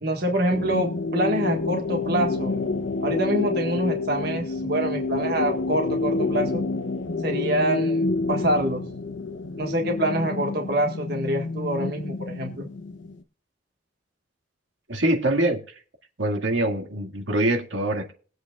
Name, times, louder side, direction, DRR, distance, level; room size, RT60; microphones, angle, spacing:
voice 1, 0.0-2.6 3.0-6.6 7.2-8.8 9.6-12.7, right 1 dB, 55° right, 2 dB, 1.7 m, -26 dB
sound 1, 0.5-13.2, left 3 dB, 80° left, 0.9 m, -28 dB
voice 2, 14.9-15.7 16.2-18.1, right 1 dB, 75° right, 1 dB, 2.0 m, -24 dB
22.0 x 8.2 x 2.4 m, 0.39 s
head